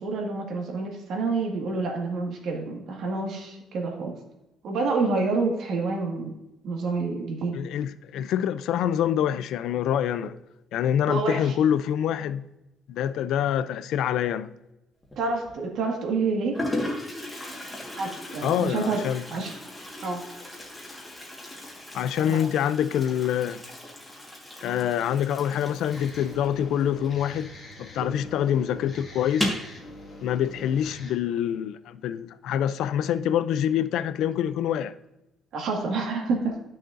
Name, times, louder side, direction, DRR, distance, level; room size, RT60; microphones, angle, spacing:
voice 1, 0.0-4.2 4.6-6.3 6.6-7.5 11.1-11.5 15.2-16.6 17.9-19.0 19.3-19.5 20.0-20.2 22.1-22.4 35.5-36.5, right 3 dB, 65° right, 1.8 m, -28 dB
voice 2, 7.5-10.3 10.7-12.4 12.9-14.5 18.4-19.3 21.9-23.6 24.6-27.5 27.8-29.6 30.2-34.9, left 10 dB, 75° left, 0.4 m, -26 dB
Toilet flush, 15.0-15.5 16.2-16.3 16.5-27.8 28.1-28.2 28.5-28.6 29.3-29.7, left 1 dB, 10° left, 1.6 m, -36 dB
sound 1, 25.9-31.1, left 1 dB, 30° left, 2.0 m, -43 dB
11.0 x 6.4 x 2.6 m
cardioid pair, 150°, 0 cm